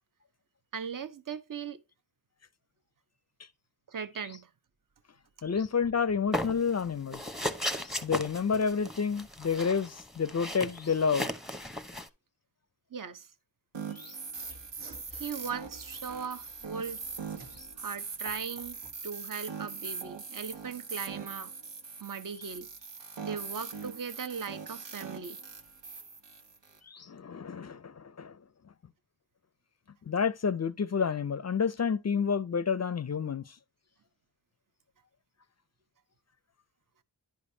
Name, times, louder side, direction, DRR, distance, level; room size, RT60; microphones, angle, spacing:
voice 1, 0.7-1.8 3.9-4.5 12.9-13.3 15.1-17.0 17.8-18.8 19.0-21.5 22.0-22.7 23.2-25.4, right 6 dB, 50° right, 0.8 m, -38 dB
voice 2, 5.4-7.2 7.7-11.3 14.0-14.2 17.6-17.7 26.9-28.4 30.1-33.5, left 6 dB, 40° left, 0.4 m, -30 dB
sound 1, 6.3-6.8 7.1-12.1, left 1 dB, ahead, 0.8 m, -36 dB
sound 2, 13.7-26.8, right 5 dB, 85° right, 1.0 m, -41 dB
Mechanisms / Sawing, 14.3-19.0, right 2 dB, 65° right, 1.5 m, -54 dB
10.5 x 5.1 x 2.7 m
cardioid pair, 45°, 43 cm